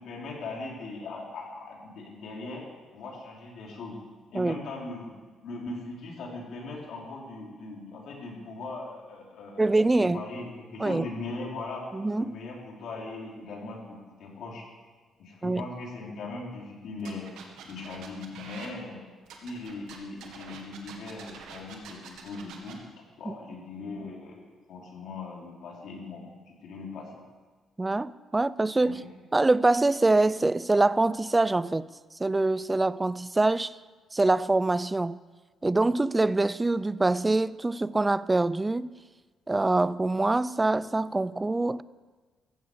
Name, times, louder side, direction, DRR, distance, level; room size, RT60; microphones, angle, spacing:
voice 1, 0.0-2.6 2.9-4.0 4.3-5.2 5.4-11.9 12.2-14.6 15.2-17.3 17.6-19.0 19.4-22.8 23.2-27.1 28.8-29.0, left 3 dB, 75° left, 3.9 m, -39 dB
voice 2, 9.6-10.2 10.8-11.1 11.9-12.4 15.4-15.6 23.3-23.4 27.8-29.0 29.3-31.9 32.2-33.7 34.1-35.2 35.6-38.9 39.5-41.8, right 2 dB, 20° right, 0.4 m, -24 dB
sound 1, 17.0-18.7 19.3-22.7, right 6 dB, 85° right, 2.0 m, -46 dB
15.5 x 15.0 x 5.0 m
cardioid pair, 90°, 0 cm